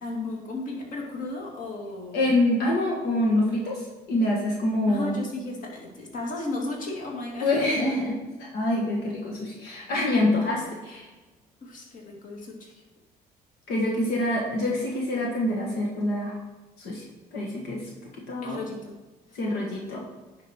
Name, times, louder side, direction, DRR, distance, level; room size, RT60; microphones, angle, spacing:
voice 1, 0.0-2.2 4.9-7.7 11.6-12.8 18.4-18.9 19.3-19.4, left 2 dB, 50° left, -1 dB, 2.2 m, -34 dB
voice 2, 2.1-5.2 7.4-8.1 8.5-11.1 13.7-16.4 16.8-17.0 17.3-17.9 18.3-18.6 19.3-20.0, left 1 dB, 75° left, -2 dB, 1.7 m, -26 dB
10.0 x 5.2 x 4.4 m, 1.2 s
cardioid pair, 110°, 17 cm